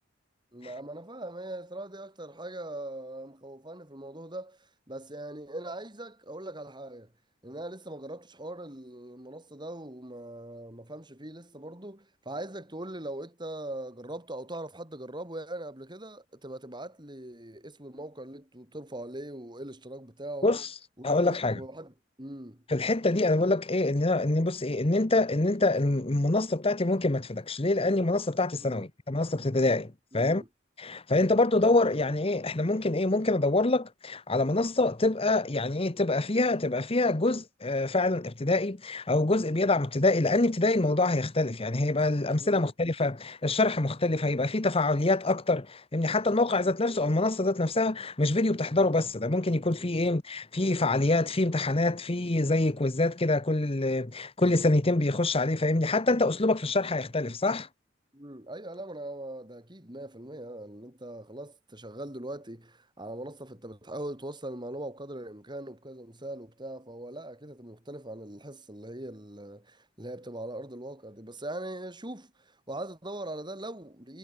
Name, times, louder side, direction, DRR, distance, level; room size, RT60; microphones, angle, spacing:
voice 1, 0.5-7.1 7.4-20.6 21.0-22.6 28.6-28.8 30.1-30.5 31.6-31.9 42.4-42.7 46.6-46.8 49.8-50.0 58.1-74.2, right 1 dB, 25° right, 7.0 m, -41 dB
voice 2, 21.0-21.6 22.7-30.4 30.8-57.7, left 2 dB, 30° left, 1.1 m, -26 dB
head